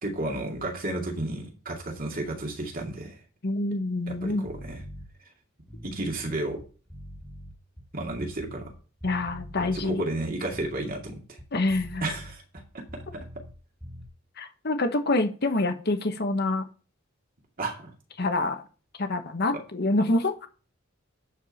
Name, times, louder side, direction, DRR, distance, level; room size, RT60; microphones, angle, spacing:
voice 1, 0.0-3.2 4.1-4.8 5.8-6.6 7.9-8.7 9.7-11.4 12.0-12.4 13.1-13.2 17.6-17.9, right 2 dB, 45° right, 1 dB, 2.4 m, -32 dB
voice 2, 3.4-4.5 9.0-10.0 11.5-12.0 14.4-16.6 18.2-18.7 19.0-20.5, left 2 dB, 55° left, 8 dB, 1.3 m, -26 dB
sound 1, 4.5-5.1 5.6-8.7 9.0-9.9 10.4-13.5 13.8-14.1, equal, ahead, 2.1 m, -43 dB
10.5 x 4.8 x 5.7 m, 0.37 s
head